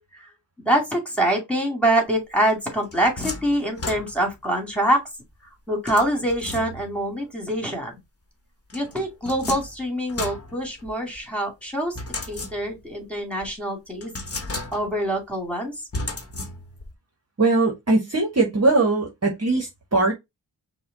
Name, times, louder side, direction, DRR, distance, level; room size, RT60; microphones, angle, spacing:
voice 1, 0.6-5.0 5.7-8.0 8.7-11.9 12.3-14.1 14.7-15.7, right 1 dB, 5° left, 2.3 m, -24 dB
sound 1, 2.5-4.5 5.9-7.1 8.7-11.2 11.9-12.9 13.4-13.5 14.0-15.1 15.9-16.9, left 2 dB, 35° left, 1.2 m, -34 dB
voice 2, 17.4-20.1, right 3 dB, 35° right, 1.3 m, -20 dB
5.5 x 2.3 x 3.8 m
cardioid pair, 60°, 43 cm